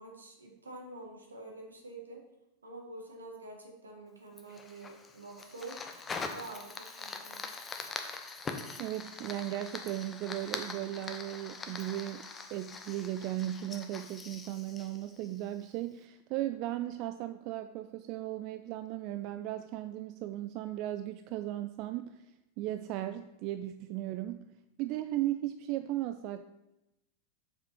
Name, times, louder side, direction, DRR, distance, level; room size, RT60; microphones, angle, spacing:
voice 1, 0.0-2.2 2.6-5.8 6.3-7.5, right 2 dB, 75° right, 1 dB, 1.6 m, -47 dB
Fire, 4.4-15.7, left 4 dB, 20° left, 0.8 m, -43 dB
voice 2, 8.8-22.2 22.6-24.5 24.8-26.4, right 14 dB, 40° right, 10 dB, 0.3 m, -36 dB
7.2 x 5.1 x 4.3 m, 0.94 s
figure-of-eight pair, 90°, 0 cm